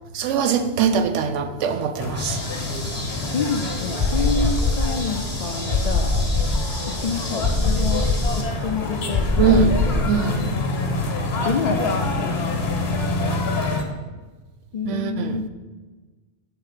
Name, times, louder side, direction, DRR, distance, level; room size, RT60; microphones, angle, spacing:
voice 1, 0.1-2.4 9.4-9.8 10.1-10.5 14.8-15.5, right 6 dB, 90° right, 9 dB, 1.0 m, -22 dB
sound 1, 2.0-13.8, left 3 dB, 60° left, 1.1 m, -27 dB
sound 2, 2.1-8.4, left 1 dB, 10° right, 1.6 m, -35 dB
voice 2, 3.3-6.1 6.9-8.1 8.4-10.5 11.4-12.4 14.7-15.5, left 5 dB, 90° left, 4 dB, 0.3 m, -28 dB
sound 3, 3.3-5.2 5.7-8.5 9.1-10.0, left 2 dB, 65° right, 2.2 m, -23 dB
7.0 x 3.8 x 5.7 m, 1.3 s
omnidirectional pair, 1.2 m